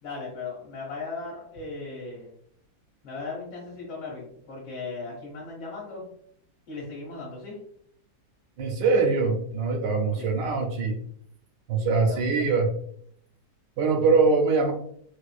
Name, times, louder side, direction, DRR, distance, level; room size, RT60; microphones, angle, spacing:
voice 1, 0.0-2.3 3.0-6.1 6.7-7.6 10.2-10.3 11.8-12.4, left 3 dB, 80° left, -4 dB, 1.6 m, -37 dB
voice 2, 8.6-11.0 11.7-12.7 13.8-14.7, right 4 dB, 90° right, 4 dB, 1.3 m, -23 dB
4.4 x 2.5 x 2.3 m, 0.66 s
omnidirectional pair, 1.9 m